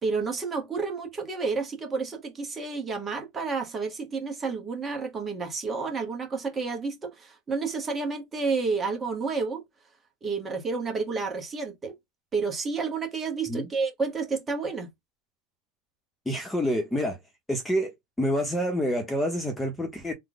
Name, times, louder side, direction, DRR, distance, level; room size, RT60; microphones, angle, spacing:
voice 1, 0.0-9.6 10.2-11.9 12.3-14.9, right 4 dB, 20° right, 1.1 m, -30 dB
voice 2, 16.3-17.2 17.5-17.9 18.2-20.1, equal, 5° left, 0.9 m, -27 dB
3.3 x 2.2 x 3.9 m
supercardioid pair, 145°, 0 cm